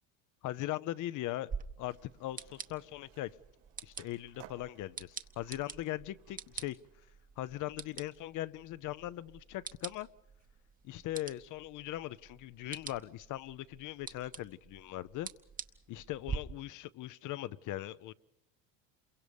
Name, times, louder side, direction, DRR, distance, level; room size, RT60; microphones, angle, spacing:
voice 1, 0.4-1.5 1.8-3.3 3.8-6.8 7.4-10.1 10.8-15.3 15.9-18.1, left 15 dB, 55° left, 0.7 m, -40 dB
sound 1, 1.5-16.4, right 5 dB, 20° right, 0.9 m, -47 dB
Skateboard, 1.9-7.1, right 10 dB, 85° right, 4.1 m, -60 dB
28.0 x 23.0 x 5.3 m
cardioid pair, 125°, 38 cm